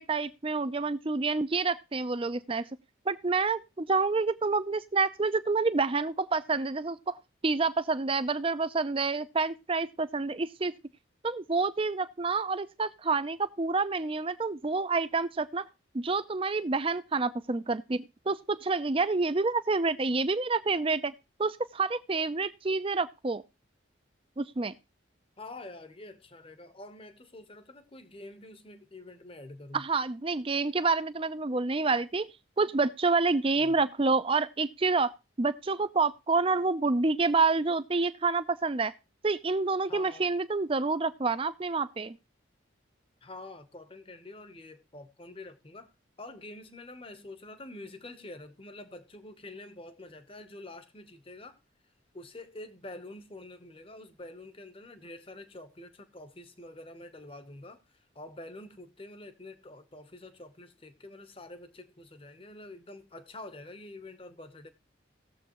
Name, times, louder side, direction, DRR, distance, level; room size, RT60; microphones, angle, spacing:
voice 1, 0.0-2.7 3.1-7.2 7.4-10.7 11.2-15.6 15.9-21.1 21.4-23.4 24.4-24.7 29.7-32.3 32.6-35.1 35.4-38.9 39.2-42.2, right 3 dB, 25° right, 0.5 m, -28 dB
voice 2, 25.4-29.8 33.5-33.8 39.9-40.3 43.2-45.9 46.2-51.6 52.1-64.7, left 2 dB, 25° left, 0.9 m, -47 dB
18.0 x 7.3 x 3.0 m
head